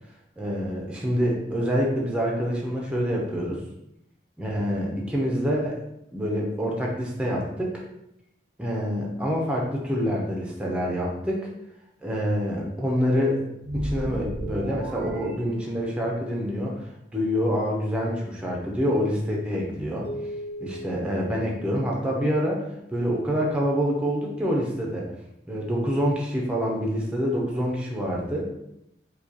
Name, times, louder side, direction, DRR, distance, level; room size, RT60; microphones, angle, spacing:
voice 1, 0.4-3.6 4.4-5.8 6.1-7.8 8.6-11.5 12.0-13.4 13.7-20.1 20.6-22.7 22.9-25.1 25.5-28.5, equal, 5° right, -2 dB, 0.6 m, -26 dB
sound 1, 13.6-16.2, right 1 dB, 55° right, 0.4 m, -34 dB
sound 2, 20.0-22.6, equal, 60° left, 1.0 m, -39 dB
4.8 x 2.3 x 2.8 m, 0.82 s
head